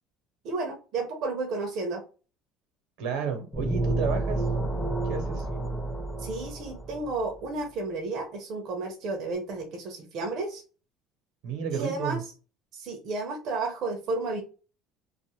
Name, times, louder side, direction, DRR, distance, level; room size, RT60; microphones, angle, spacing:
voice 1, 0.4-2.0 6.2-10.6 11.7-12.2 12.7-14.4, right 3 dB, 55° right, 2 dB, 0.7 m, -32 dB
voice 2, 3.0-4.4 5.0-5.4 11.4-12.2, right 6 dB, 80° right, 5 dB, 1.0 m, -31 dB
sound 1, 3.5-7.2, right 2 dB, 10° left, 0.6 m, -30 dB
2.5 x 2.4 x 3.0 m, 0.34 s
cardioid pair, 120°, 0 cm